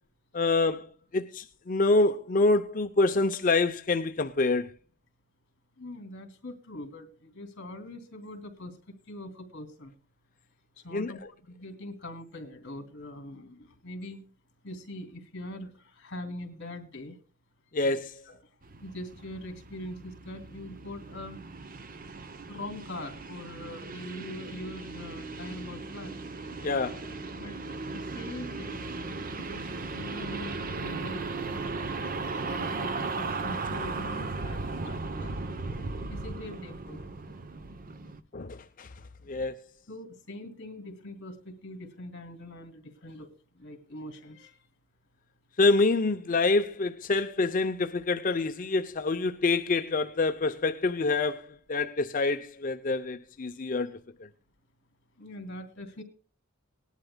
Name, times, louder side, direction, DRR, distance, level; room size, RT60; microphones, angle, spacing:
voice 1, 0.3-4.7 10.9-11.1 17.7-18.2 26.6-27.1 38.3-38.9 39.3-39.6 45.6-54.0, left 3 dB, 40° left, 0.6 m, -26 dB
voice 2, 5.8-9.9 10.8-14.3 14.6-17.1 17.8-18.4 18.8-21.5 22.5-26.1 27.3-27.6 27.9-28.8 29.4-31.2 31.8-35.3 36.0-37.0 39.3-39.5 39.9-43.3 43.6-44.6 55.2-56.0, left 1 dB, 55° left, 2.7 m, -43 dB
sound 1, 18.6-38.2, right 3 dB, 40° right, 0.7 m, -37 dB
19.5 x 11.0 x 2.2 m
head